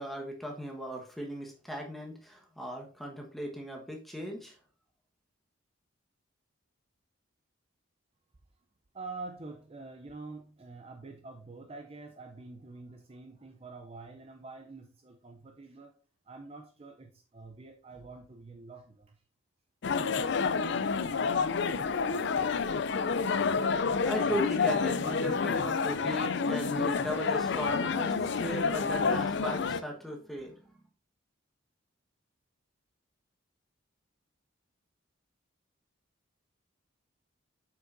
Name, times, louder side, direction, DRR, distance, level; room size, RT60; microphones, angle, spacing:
voice 1, 0.0-4.6 23.6-30.5, equal, ahead, 0 dB, 1.3 m, -37 dB
voice 2, 8.9-15.9 16.3-19.2, right 3 dB, 30° right, 4 dB, 0.5 m, -46 dB
sound 1, 19.8-29.8, left 5 dB, 55° left, 0.4 m, -29 dB
7.5 x 6.0 x 2.6 m, 0.38 s
head